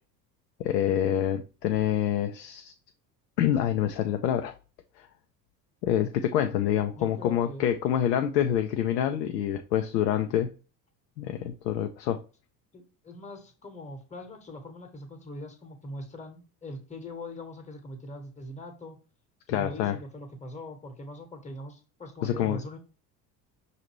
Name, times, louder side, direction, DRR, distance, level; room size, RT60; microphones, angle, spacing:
voice 1, 0.6-2.7 3.4-4.5 5.0-5.1 5.8-10.5 11.2-12.2 19.5-20.0 22.2-22.6, left 10 dB, 80° left, 6 dB, 0.5 m, -26 dB
voice 2, 7.0-7.7 12.7-19.0 19.5-22.8, left 1 dB, 15° left, 6 dB, 1.1 m, -42 dB
5.6 x 2.6 x 3.1 m, 0.35 s
hypercardioid pair, 70°, 49 cm